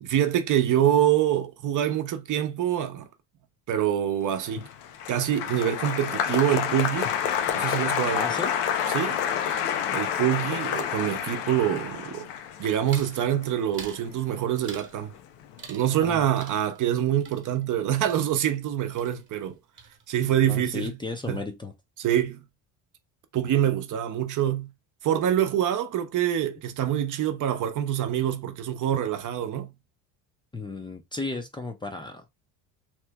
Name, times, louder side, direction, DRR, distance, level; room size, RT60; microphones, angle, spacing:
voice 1, 0.0-3.0 3.7-4.7 5.1-7.1 7.5-8.2 8.9-9.2 9.9-12.3 12.6-15.1 15.7-19.5 20.1-20.9 21.3-21.4 22.0-22.4 23.3-24.7 25.0-29.7, right 10 dB, 50° right, 0.7 m, -25 dB
Applause, 4.4-14.8 15.1-15.7, left 8 dB, 90° left, 0.7 m, -29 dB
voice 2, 8.1-8.5 16.0-16.3 20.5-21.7 30.5-32.3, left 3 dB, 10° left, 0.5 m, -34 dB
sound 1, 12.9-13.2 13.7-14.1 14.6-15.0 15.6-16.1 16.4-18.7 18.9-19.5 19.8-20.3, right 5 dB, 30° right, 1.1 m, -46 dB
3.0 x 2.1 x 3.4 m
cardioid pair, 105°, 40 cm